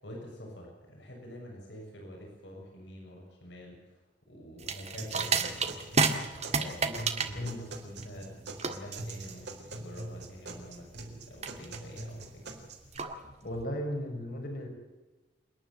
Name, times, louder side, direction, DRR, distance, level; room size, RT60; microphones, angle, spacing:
voice 1, 0.0-4.0 4.3-12.6 13.0-13.2, equal, 70° left, 0 dB, 7.1 m, -47 dB
sound 1, 4.6-13.6, right 4 dB, 35° right, 1.8 m, -33 dB
sound 2, 5.0-13.0, right 2 dB, 65° right, 4.1 m, -43 dB
voice 2, 13.4-14.7, left 1 dB, 55° left, 3 dB, 4.7 m, -35 dB
27.5 x 11.0 x 9.2 m, 1.2 s
head